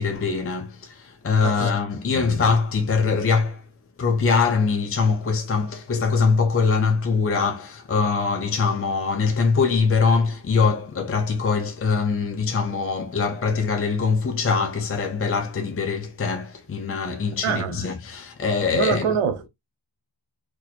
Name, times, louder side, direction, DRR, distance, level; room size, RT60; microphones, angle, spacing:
voice 1, 0.0-3.6 4.0-19.1, left 5 dB, 30° left, 0.6 m, -23 dB
voice 2, 17.4-17.8 18.7-19.5, right 7 dB, 85° right, 0.8 m, -25 dB
4.1 x 3.0 x 2.4 m
wide cardioid pair, 100°, 50 cm